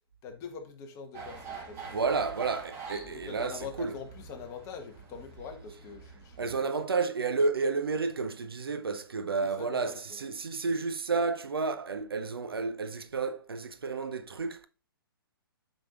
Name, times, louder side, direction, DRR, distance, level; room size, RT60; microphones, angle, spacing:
voice 1, 0.2-2.2 3.0-6.9 9.4-10.2, left 6 dB, 25° left, 1.2 m, -44 dB
sound 1, 1.1-6.6, right 5 dB, 20° right, 1.6 m, -45 dB
voice 2, 1.9-3.9 6.4-14.7, right 4 dB, 75° right, 0.7 m, -31 dB
8.7 x 5.4 x 2.5 m
figure-of-eight pair, 130°, 13 cm